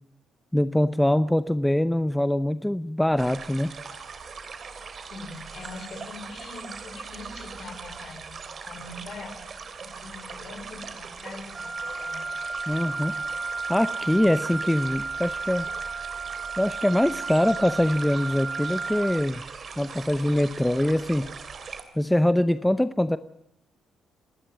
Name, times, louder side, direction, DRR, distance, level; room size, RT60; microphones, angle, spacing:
voice 1, 0.5-3.7 12.7-13.2 13.7-15.7 16.6-19.4 19.8-21.3 22.0-23.2, left 1 dB, 5° left, 13 dB, 0.7 m, -23 dB
sound 1, 3.2-21.8, right 5 dB, 45° right, 3.0 m, -41 dB
voice 2, 5.1-9.5 9.8-12.3, left 3 dB, 50° left, 9 dB, 4.2 m, -42 dB
Wind instrument woodwind instrument, 11.5-19.3, right 4 dB, 25° right, 2.7 m, -33 dB
27.0 x 11.5 x 9.1 m, 0.78 s
cardioid pair, 90°, 0 cm